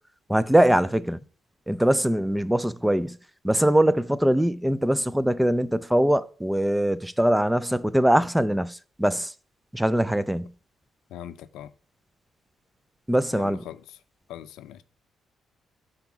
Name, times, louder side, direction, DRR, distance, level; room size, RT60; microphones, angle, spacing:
voice 1, 0.3-1.2 1.7-3.2 3.4-9.3 9.7-10.5 13.1-13.6, right 1 dB, 5° right, 0.4 m, -22 dB
voice 2, 11.1-11.7 13.3-14.0 14.3-14.8, left 11 dB, 85° left, 0.4 m, -41 dB
5.8 x 3.9 x 5.9 m
cardioid pair, 90°, 0 cm